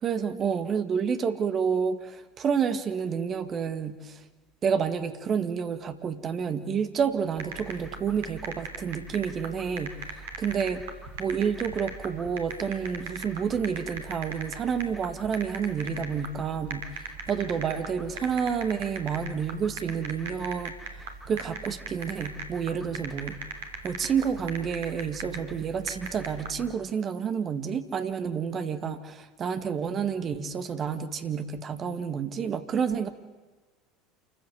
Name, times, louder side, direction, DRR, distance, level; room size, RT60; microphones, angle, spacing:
voice 1, 0.0-4.2 4.6-10.9 11.2-16.9 17.3-23.4 23.8-33.1, right 7 dB, 35° right, 10 dB, 1.9 m, -29 dB
sound 1, 7.4-26.7, right 4 dB, 65° right, 3.3 m, -39 dB
28.0 x 15.0 x 8.3 m, 1.3 s
figure-of-eight pair, 70°, 0 cm